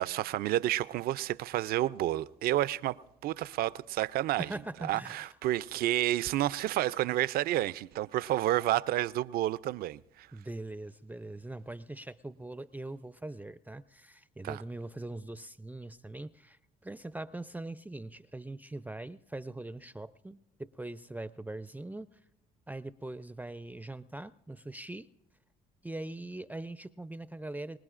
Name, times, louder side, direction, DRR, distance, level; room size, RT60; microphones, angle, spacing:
voice 1, 0.0-4.5 4.8-10.3 14.4-14.6, right 14 dB, 65° right, 0.4 m, -30 dB
voice 2, 4.4-5.4 10.3-22.1 22.7-25.1 25.8-27.8, right 2 dB, 10° right, 0.4 m, -42 dB
24.5 x 20.0 x 2.5 m
supercardioid pair, 65°, 17 cm